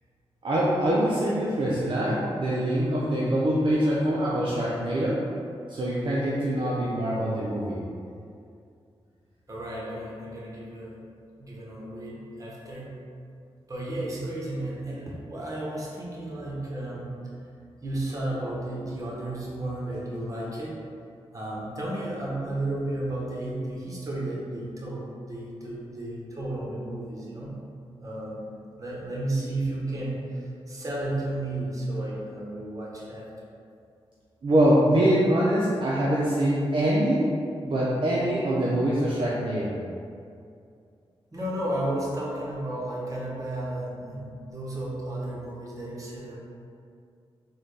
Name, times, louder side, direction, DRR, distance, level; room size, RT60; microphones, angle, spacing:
voice 1, 0.4-5.2 5.7-7.8 34.4-37.3 37.6-39.8, right 1 dB, 50° right, -6 dB, 0.5 m, -24 dB
voice 2, 9.5-11.0 11.4-13.0 13.7-17.2 17.8-20.8 21.3-27.5 28.0-28.5 28.8-33.3 41.3-46.4, right 1 dB, 30° right, -5 dB, 1.0 m, -33 dB
3.9 x 2.2 x 3.3 m, 2.4 s
cardioid pair, 55°, 11 cm